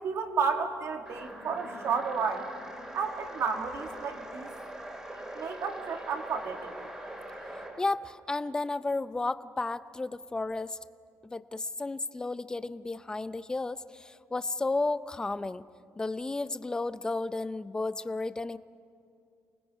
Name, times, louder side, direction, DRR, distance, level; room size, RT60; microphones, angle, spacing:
voice 1, 0.0-2.5 2.9-4.5 5.3-6.9, right 5 dB, 55° right, 4 dB, 2.2 m, -32 dB
sound 1, 1.1-7.8, right 1 dB, 10° right, 3.2 m, -43 dB
voice 2, 7.8-10.8 11.3-15.6 16.0-18.6, left 3 dB, 15° left, 14 dB, 0.5 m, -33 dB
29.0 x 20.0 x 5.6 m, 2.4 s
cardioid pair, 140°, 6 cm